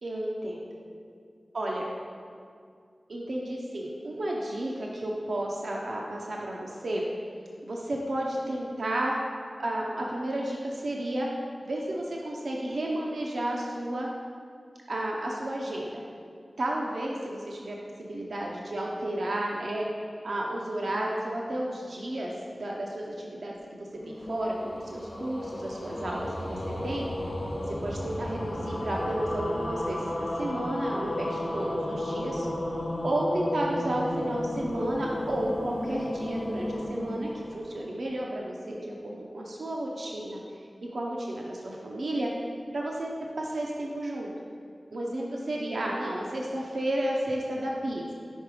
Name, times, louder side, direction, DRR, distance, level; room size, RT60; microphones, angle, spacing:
voice 1, 0.0-0.7 1.5-1.8 3.1-7.0 7.6-9.2 9.6-11.3 11.6-14.1 14.9-16.0 16.6-19.9 20.2-27.1 27.7-32.5 33.0-40.4 40.9-42.3 42.7-44.3 44.9-48.1, right 1 dB, 85° right, -2 dB, 0.6 m, -32 dB
sound 1, 23.9-38.4, left 1 dB, 60° left, 0.8 m, -33 dB
5.3 x 4.8 x 4.7 m, 2.3 s
wide cardioid pair, 75°, 0 cm